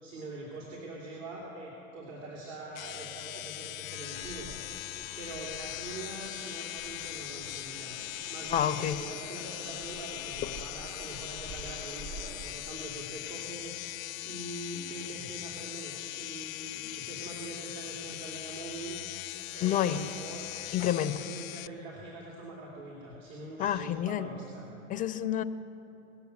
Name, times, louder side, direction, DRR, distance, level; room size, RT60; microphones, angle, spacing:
voice 1, 0.0-4.6 5.2-8.0 8.3-14.0 14.2-19.0 19.5-24.7, right 2 dB, 60° right, -3 dB, 3.1 m, -43 dB
sound 1, 2.7-21.7, left 16 dB, 70° left, 0.5 m, -40 dB
sound 2, 4.1-12.6, right 3 dB, 40° right, 1.2 m, -48 dB
voice 2, 8.5-9.0 19.6-20.1 20.7-21.1 23.6-24.3 24.9-25.4, left 11 dB, 20° left, 12 dB, 0.5 m, -28 dB
20.0 x 7.0 x 8.1 m, 3.0 s
hypercardioid pair, 100°, 43 cm